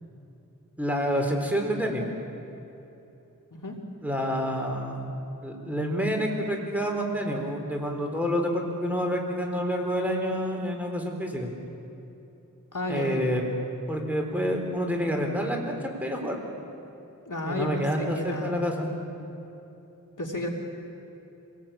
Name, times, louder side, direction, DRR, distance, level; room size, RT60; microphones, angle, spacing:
voice 1, 0.8-2.0 4.0-11.5 12.9-13.4 13.9-16.4 17.5-18.9, equal, 5° right, 1 dB, 4.2 m, -28 dB
voice 2, 12.7-13.2 17.3-18.6 20.2-20.5, left 1 dB, 65° left, 0 dB, 3.0 m, -32 dB
26.0 x 18.5 x 8.8 m, 2.9 s
wide cardioid pair, 50°, 33 cm